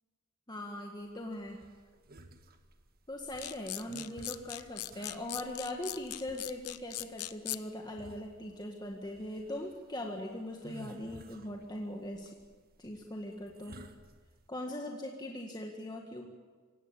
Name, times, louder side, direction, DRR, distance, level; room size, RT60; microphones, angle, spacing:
voice 1, 0.5-1.6 3.1-12.4 12.8-13.8 14.5-16.3, left 1 dB, 20° left, 1 dB, 1.8 m, -40 dB
sound 1, 1.0-14.5, right 1 dB, 45° right, 1.7 m, -55 dB
sound 2, 3.4-7.6, left 16 dB, 85° left, 0.9 m, -39 dB
27.0 x 17.0 x 8.5 m, 1.5 s
head